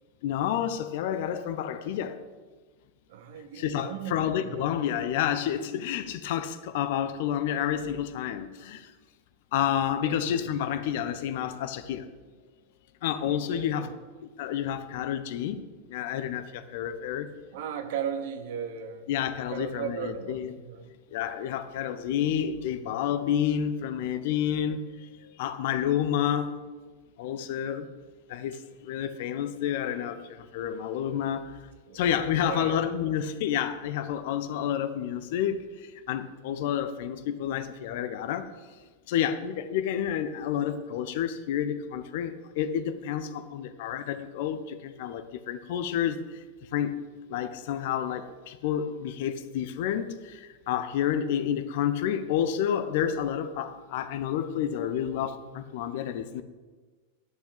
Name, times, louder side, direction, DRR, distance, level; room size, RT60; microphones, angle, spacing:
voice 1, 0.2-2.2 3.6-8.8 9.5-12.0 13.0-13.9 14.4-15.6 15.9-17.3 19.1-20.5 21.1-24.8 25.4-26.5 27.2-27.9 28.3-28.6 28.8-30.2 30.5-31.4 31.9-35.7 36.1-38.5 39.1-46.2 46.7-46.9 47.3-50.2 50.7-56.4, left 9 dB, 50° left, 11 dB, 0.8 m, -29 dB
voice 2, 3.1-4.7 10.0-10.3 13.3-13.9 17.5-19.1 19.5-20.9 31.9-32.1 32.4-33.1, right 8 dB, 55° right, 8 dB, 1.2 m, -37 dB
10.5 x 7.0 x 8.9 m, 1.4 s
figure-of-eight pair, 90°, 0 cm